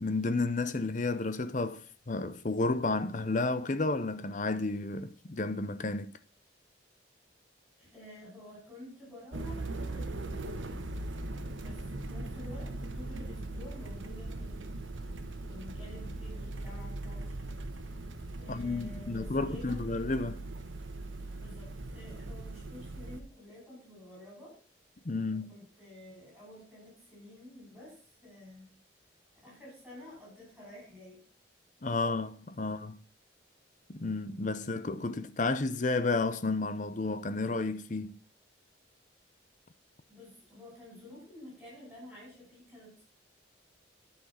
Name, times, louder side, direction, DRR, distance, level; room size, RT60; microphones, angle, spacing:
voice 1, 0.0-6.2 18.5-20.4 25.0-25.5 31.8-33.0 33.9-38.2, left 3 dB, 40° left, 0.7 m, -32 dB
voice 2, 7.8-10.6 11.5-14.8 15.5-17.4 18.4-20.0 21.3-24.6 25.3-28.7 29.4-31.3 32.6-32.8 40.1-43.0, left 1 dB, 5° right, 5.7 m, -50 dB
sound 1, 9.3-23.2, right 2 dB, 90° right, 1.2 m, -40 dB
10.5 x 5.9 x 5.6 m
head